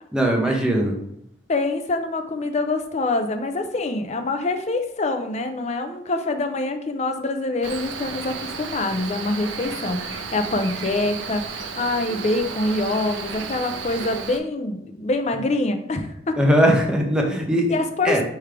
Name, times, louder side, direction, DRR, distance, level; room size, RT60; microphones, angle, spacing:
voice 1, 0.1-0.9 16.4-17.7 18.0-18.2, equal, 5° right, 0 dB, 0.6 m, -19 dB
voice 2, 1.5-16.4 17.7-18.2, left 2 dB, 35° left, 6 dB, 0.4 m, -25 dB
Cricket, 7.6-14.4, right 5 dB, 75° right, 0.5 m, -33 dB
3.6 x 3.3 x 4.5 m, 0.76 s
head